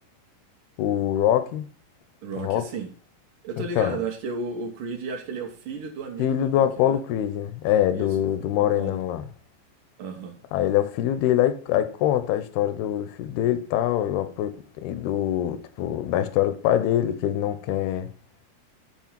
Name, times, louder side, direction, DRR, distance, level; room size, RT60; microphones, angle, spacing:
voice 1, 0.8-1.7 2.4-2.7 3.8-4.0 6.2-9.3 10.5-18.1, left 11 dB, 85° left, 2.7 m, -24 dB
voice 2, 2.2-2.9 3.4-7.0 7.9-8.1 8.4-9.0 10.0-10.4, right 4 dB, 65° right, 2.5 m, -34 dB
8.4 x 4.6 x 7.3 m
omnidirectional pair, 4.4 m